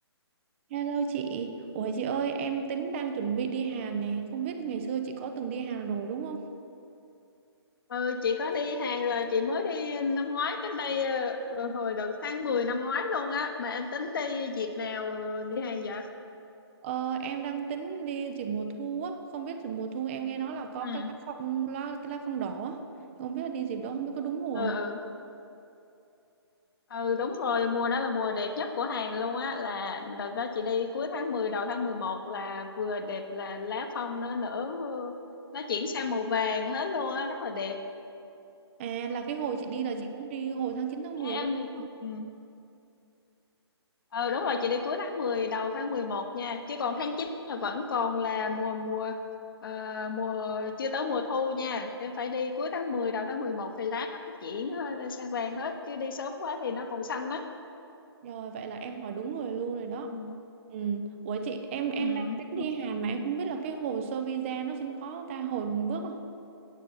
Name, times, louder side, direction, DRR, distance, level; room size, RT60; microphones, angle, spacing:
voice 1, 0.7-6.4 16.8-22.8 23.2-24.8 38.8-41.9 58.2-60.1 60.7-62.3 62.5-66.2, right 6 dB, 25° right, 6 dB, 0.7 m, -33 dB
voice 2, 7.9-16.1 20.8-21.1 24.5-25.0 26.9-35.1 35.5-37.8 39.8-40.1 41.2-41.7 42.0-42.3 44.1-49.2 49.6-57.4 60.1-60.4 62.0-62.7, left 4 dB, 55° left, 6 dB, 1.0 m, -31 dB
9.2 x 8.2 x 5.7 m, 2.7 s
figure-of-eight pair, 140°, 14 cm